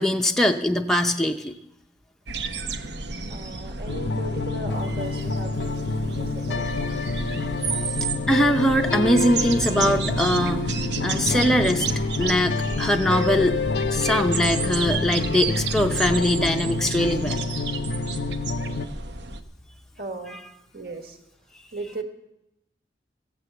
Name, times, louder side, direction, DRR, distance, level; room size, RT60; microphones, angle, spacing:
voice 1, 0.0-1.6 8.3-10.7 11.0-11.9 12.2-13.6 13.9-17.4 20.3-20.4, equal, 5° left, 2 dB, 0.5 m, -22 dB
sound 1, 2.3-19.4, right 4 dB, 80° right, 0.9 m, -31 dB
voice 2, 3.3-6.6 20.0-20.4 20.7-21.2 21.7-22.0, right 2 dB, 60° right, 5 dB, 1.5 m, -36 dB
sound 2, 3.9-18.9, left 3 dB, 80° left, 0.5 m, -28 dB
15.0 x 8.4 x 7.8 m, 0.86 s
head